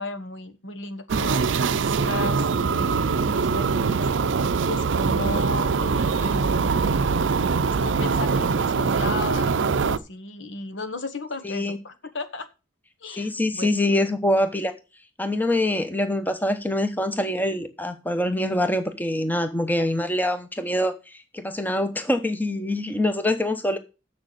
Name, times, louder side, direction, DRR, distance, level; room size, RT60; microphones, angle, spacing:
voice 1, 0.0-1.5 1.9-4.1 4.6-6.7 7.7-12.5 13.0-13.8, left 3 dB, 85° left, 1.2 m, -35 dB
sound 1, 1.1-10.0, right 5 dB, 90° right, 0.5 m, -23 dB
voice 2, 11.4-11.8 13.1-14.7 15.2-23.8, left 1 dB, 10° left, 0.9 m, -24 dB
7.2 x 6.5 x 6.5 m
head